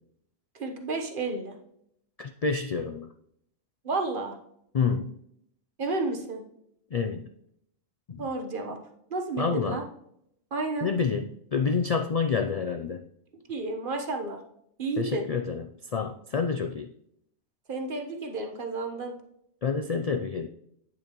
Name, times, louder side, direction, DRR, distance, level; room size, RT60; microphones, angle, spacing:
voice 1, 0.5-1.5 3.8-4.4 5.8-6.4 8.2-8.8 9.1-9.8 10.5-10.9 13.5-14.4 14.8-15.3 17.7-19.1, right 3 dB, 45° right, 4 dB, 1.2 m, -31 dB
voice 2, 2.2-3.1 4.7-5.1 6.9-7.3 8.1-8.3 9.4-9.8 10.8-13.0 15.0-16.9 19.6-20.5, left 5 dB, 75° left, 6 dB, 0.3 m, -28 dB
9.0 x 8.5 x 3.0 m, 0.73 s
omnidirectional pair, 1.3 m